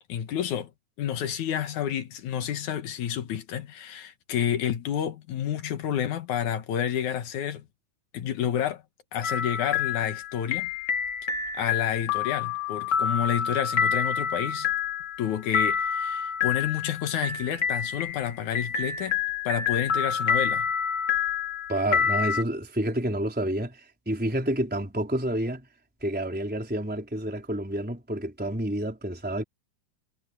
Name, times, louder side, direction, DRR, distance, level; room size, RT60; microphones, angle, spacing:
voice 1, 0.1-0.7 1.0-7.6 8.1-8.8 9.1-10.7 11.6-14.7 15.2-19.2 19.4-20.7, left 9 dB, 70° left, 2.7 m, -29 dB
sound 1, 9.2-22.4, left 7 dB, 40° left, 2.5 m, -28 dB
voice 2, 21.7-25.7 26.0-29.4, right 1 dB, 5° right, 4.0 m, -29 dB
omnidirectional pair, 3.6 m